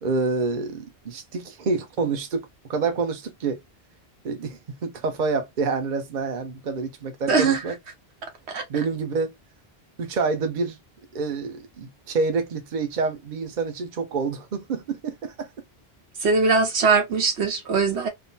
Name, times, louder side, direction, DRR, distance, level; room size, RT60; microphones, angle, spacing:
voice 1, 0.0-3.6 4.2-7.8 8.7-9.3 10.0-10.8 11.1-15.5, right 4 dB, 50° right, 0.8 m, -27 dB
voice 2, 7.3-7.6 8.5-8.6 16.2-18.1, right 4 dB, 85° right, 1.3 m, -21 dB
3.7 x 2.0 x 2.7 m
omnidirectional pair, 1.1 m